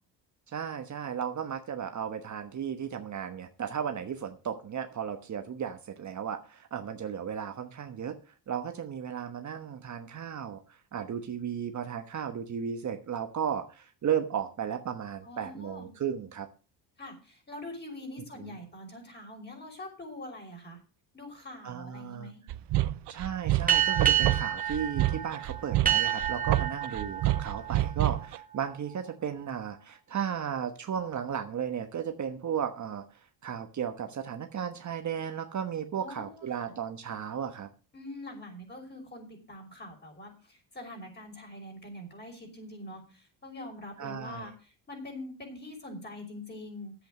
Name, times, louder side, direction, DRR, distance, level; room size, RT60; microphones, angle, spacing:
voice 1, 0.5-8.2 8.5-16.5 18.4-18.5 21.6-22.3 23.1-33.0 33.4-37.7 44.0-44.4, right 8 dB, 40° right, 6 dB, 1.2 m, -35 dB
voice 2, 15.2-15.9 17.0-20.8 21.1-22.4 36.0-36.7 37.9-46.9, left 1 dB, 25° left, 2 dB, 5.7 m, -44 dB
sound 1, 22.5-28.4, right 15 dB, 65° right, 0.8 m, -28 dB
sound 2, 23.7-28.8, right 10 dB, 20° right, 1.9 m, -29 dB
10.5 x 8.2 x 6.3 m, 0.36 s
cardioid pair, 105°, 44 cm